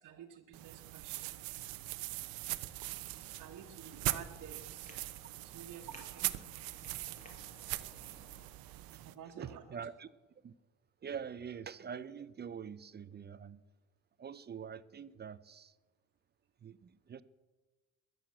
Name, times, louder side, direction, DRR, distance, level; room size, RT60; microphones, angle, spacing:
voice 1, 0.0-1.4 2.9-4.9 5.4-6.5 7.6-7.8 9.0-9.9, right 8 dB, 60° right, -1 dB, 1.6 m, -52 dB
sound 1, 0.5-9.1, right 17 dB, 80° right, 0.9 m, -41 dB
Traffic noise roadway noise, 3.1-8.5, left 1 dB, 20° left, 5.2 m, -60 dB
voice 2, 9.4-10.1 10.4-10.5 11.0-13.6 14.2-15.7 16.6-17.2, right 7 dB, 30° right, 15 dB, 0.6 m, -45 dB
21.5 x 8.0 x 7.6 m, 1.3 s
cardioid pair, 105°, 35 cm